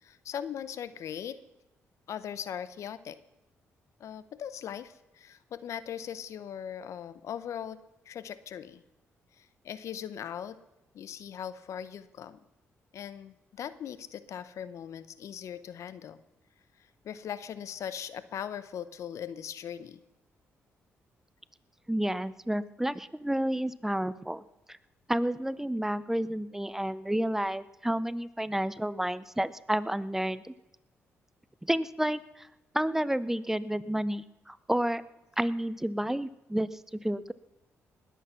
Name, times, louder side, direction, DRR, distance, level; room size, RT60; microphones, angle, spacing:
voice 1, 0.0-1.4 2.1-3.2 4.0-7.8 8.1-8.8 9.4-10.6 10.9-12.4 12.9-16.2 17.0-20.0, left 9 dB, 70° left, 15 dB, 0.8 m, -39 dB
voice 2, 21.9-24.4 24.7-24.8 25.1-30.5 31.6-32.5 32.7-35.0 35.4-37.3, right 1 dB, 5° right, 16 dB, 0.6 m, -30 dB
19.5 x 8.5 x 5.8 m, 0.96 s
cardioid pair, 70°, 5 cm